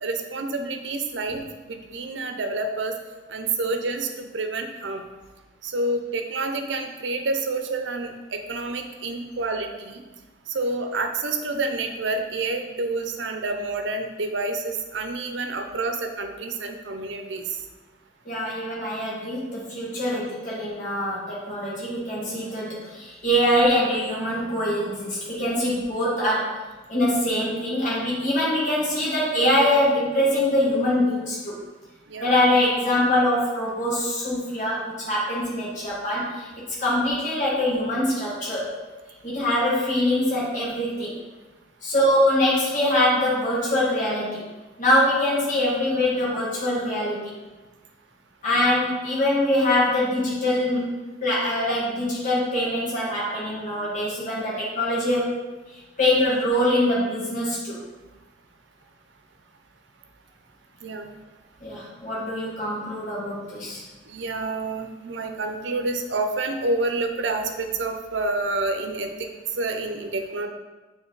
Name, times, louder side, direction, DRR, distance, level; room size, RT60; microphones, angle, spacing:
voice 1, 0.0-2.9 3.3-5.1 5.6-10.0 10.5-17.5 32.1-32.3 45.6-46.0 60.8-61.1 64.1-69.3 69.6-70.5, right 3 dB, 75° right, 5 dB, 0.7 m, -28 dB
voice 2, 18.2-26.5 26.9-31.6 32.2-36.5 36.8-38.7 39.2-41.1 41.8-44.5 44.8-47.3 48.4-55.3 55.7-57.8 61.6-63.8, left 1 dB, 45° left, -7 dB, 1.7 m, -23 dB
7.2 x 3.3 x 3.9 m, 1.2 s
head